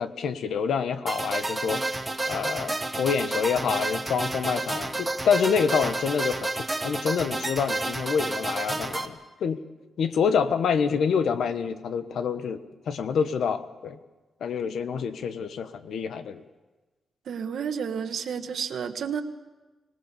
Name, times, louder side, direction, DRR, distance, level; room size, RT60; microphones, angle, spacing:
voice 1, 0.0-6.5 6.8-9.6 10.0-14.0 14.4-16.4, left 6 dB, 75° left, 11 dB, 1.3 m, -27 dB
sound 1, 1.1-9.1, right 2 dB, 10° right, 1.1 m, -30 dB
voice 2, 17.3-19.2, right 7 dB, 65° right, 7 dB, 1.5 m, -31 dB
25.5 x 19.0 x 6.9 m, 1.2 s
wide cardioid pair, 175°, 0 cm